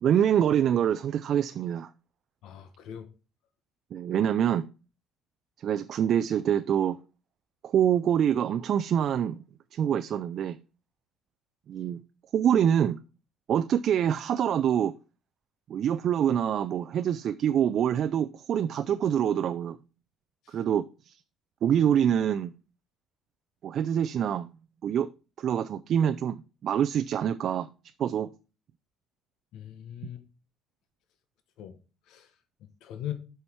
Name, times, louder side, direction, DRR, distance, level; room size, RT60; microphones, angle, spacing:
voice 1, 0.0-1.9 3.9-4.7 5.6-7.0 7.6-9.4 9.7-10.6 11.7-12.0 12.3-13.0 13.5-14.9 15.7-19.8 20.5-21.2 21.6-22.5 23.6-24.5 24.8-25.1 25.4-27.7 28.0-28.3, right 9 dB, 45° right, 0.3 m, -25 dB
voice 2, 2.4-3.1 20.5-20.6 29.5-30.2 31.6-31.8 32.1-32.3 32.8-33.1, left 11 dB, 65° left, 1.0 m, -39 dB
7.7 x 5.7 x 4.5 m
cardioid pair, 165°, 0 cm